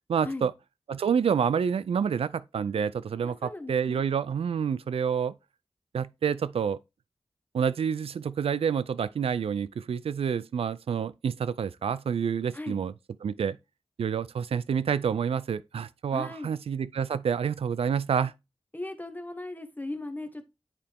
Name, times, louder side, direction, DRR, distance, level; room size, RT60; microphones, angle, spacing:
voice 1, 0.1-0.5 0.9-5.3 5.9-6.8 7.5-12.9 13.2-13.6 14.0-18.3, right 7 dB, 85° right, 0.4 m, -28 dB
voice 2, 3.2-4.0 12.5-12.8 16.1-16.5 18.7-20.4, left 2 dB, 20° left, 1.3 m, -38 dB
9.9 x 4.2 x 3.5 m
wide cardioid pair, 75°, 10 cm